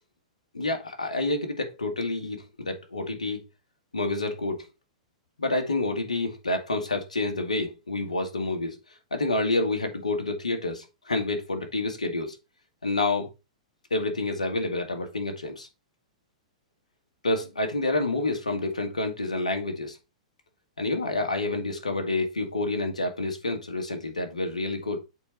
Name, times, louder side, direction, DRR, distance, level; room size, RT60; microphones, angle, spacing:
voice 1, 0.5-3.4 3.9-4.7 5.4-8.8 9.1-12.4 12.8-13.3 13.9-15.7 17.2-20.0 20.8-25.0, left 2 dB, 90° left, 1.9 m, -28 dB
8.3 x 4.2 x 4.4 m
hypercardioid pair, 110°, 4 cm